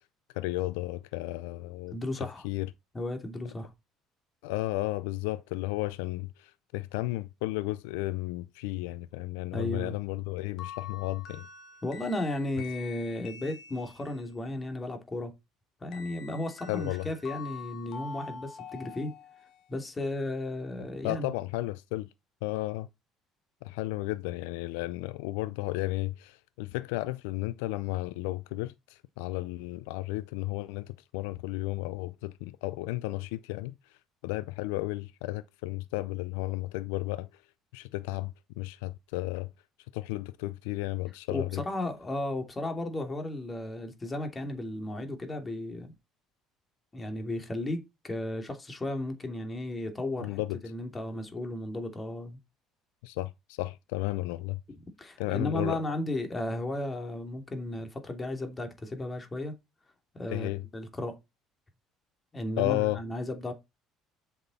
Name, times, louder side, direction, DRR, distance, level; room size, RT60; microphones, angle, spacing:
voice 1, 0.3-2.0 2.4-2.7 4.4-11.5 16.7-17.1 21.0-22.1 22.4-22.9 23.6-33.7 34.2-37.3 37.7-39.5 39.9-41.6 50.2-50.6 53.0-54.6 55.2-55.8 60.3-60.6 62.6-63.0, left 19 dB, 80° left, 0.4 m, -33 dB
voice 2, 1.9-2.5 2.9-3.7 9.5-9.9 11.8-15.3 15.8-19.2 19.7-21.3 41.3-45.9 46.9-52.4 54.7-59.5 60.1-61.2 62.3-63.5, left 1 dB, 25° left, 2.9 m, -34 dB
sound 1, 10.6-14.3 15.9-19.7, left 6 dB, 65° left, 2.1 m, -45 dB
8.0 x 6.0 x 4.2 m
hypercardioid pair, 65°, 0 cm